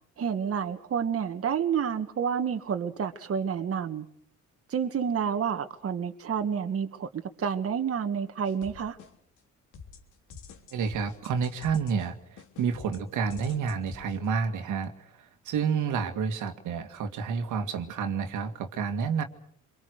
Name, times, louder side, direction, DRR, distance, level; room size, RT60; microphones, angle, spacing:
voice 1, 0.2-4.1 4.7-7.1 7.4-9.0, right 7 dB, 50° right, 7 dB, 1.7 m, -29 dB
sound 1, 8.4-9.4 9.7-14.3, left 6 dB, 80° left, 3.2 m, -48 dB
voice 2, 10.7-12.2 12.6-14.9 15.5-19.2, right 6 dB, 85° right, 7 dB, 2.3 m, -29 dB
26.5 x 23.0 x 6.6 m, 0.64 s
cardioid pair, 90°, 30 cm